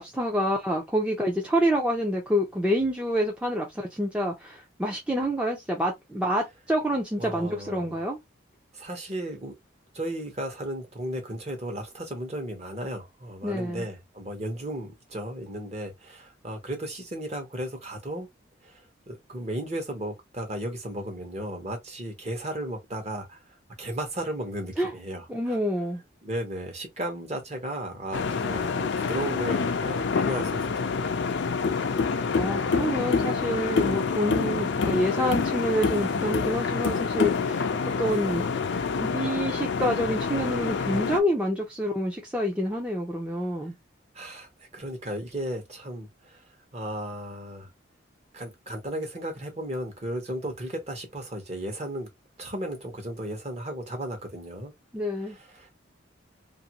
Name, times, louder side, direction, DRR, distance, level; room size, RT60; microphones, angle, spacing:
voice 1, 0.0-8.2 13.4-13.8 24.8-24.9 25.3-26.0 32.1-37.7 38.0-38.6 38.9-43.7 54.9-55.4, equal, 5° right, 0.5 m, -27 dB
voice 2, 7.2-8.0 8.7-9.5 9.9-18.3 18.6-23.4 23.8-25.6 26.2-31.5 44.1-47.7 48.3-52.1 52.4-54.7 55.3-55.7, right 1 dB, 35° right, 0.9 m, -35 dB
sound 1, 28.1-41.2, left 5 dB, 60° left, 0.4 m, -27 dB
2.6 x 2.6 x 2.8 m
head